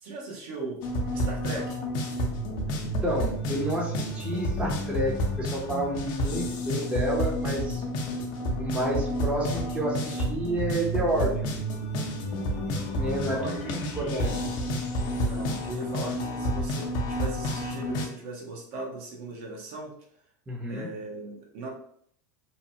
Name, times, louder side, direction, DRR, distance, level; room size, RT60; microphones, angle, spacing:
voice 1, 0.0-1.8 13.1-14.3 15.1-19.9 20.7-21.7, right 2 dB, 65° right, -1 dB, 1.0 m, -38 dB
sound 1, 0.8-18.1, equal, 50° left, 0.6 m, -30 dB
voice 2, 3.0-7.8 8.6-11.6 12.7-13.5 14.0-14.4 20.5-20.9, right 1 dB, 10° right, -3 dB, 0.7 m, -30 dB
2.9 x 2.1 x 2.8 m, 0.65 s
supercardioid pair, 120°, 10 cm